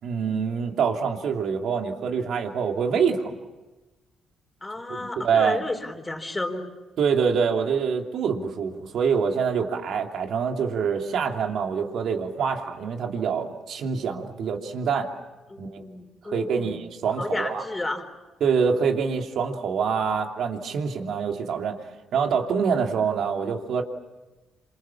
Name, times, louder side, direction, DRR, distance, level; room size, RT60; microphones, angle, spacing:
voice 1, 0.0-3.3 4.9-5.6 7.0-15.1 15.6-15.8 16.2-17.6 18.4-21.8 22.1-23.8, right 6 dB, 70° right, 3 dB, 3.0 m, -25 dB
voice 2, 4.6-6.7 15.5-16.8 17.2-18.1, left 2 dB, 20° left, 3 dB, 3.8 m, -32 dB
28.5 x 27.5 x 7.3 m, 1.1 s
cardioid pair, 90°, 0 cm